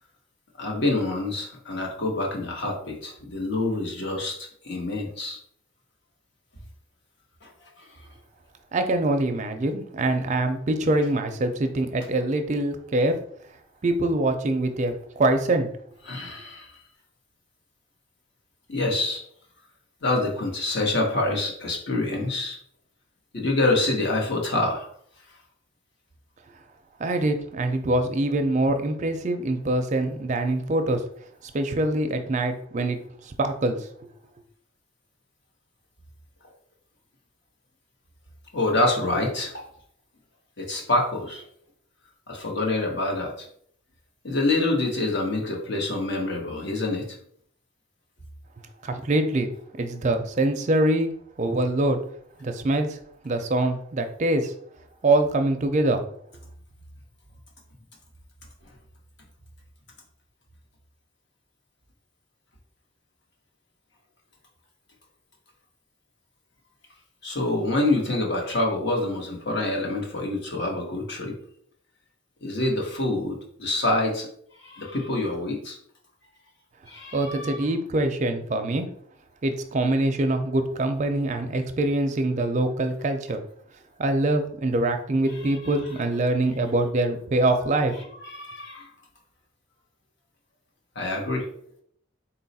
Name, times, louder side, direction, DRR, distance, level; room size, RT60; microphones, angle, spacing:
voice 1, 0.6-4.4 4.6-5.4 7.4-8.1 16.0-16.8 18.7-19.2 20.0-22.6 23.3-24.9 38.5-39.7 40.6-41.4 42.3-43.5 44.2-47.1 67.2-71.3 72.4-74.3 74.6-75.8 76.9-77.6 85.6-85.7 88.2-88.9 90.9-91.5, left 2 dB, 60° left, 1 dB, 1.0 m, -26 dB
voice 2, 8.7-13.1 13.8-15.7 27.0-31.0 31.5-33.9 48.8-49.5 49.8-51.1 51.4-52.0 52.4-53.0 53.2-54.5 55.0-56.0 77.1-78.9 79.4-83.4 84.0-87.9, right 2 dB, 35° right, 7 dB, 0.4 m, -24 dB
4.0 x 2.3 x 4.0 m, 0.64 s
head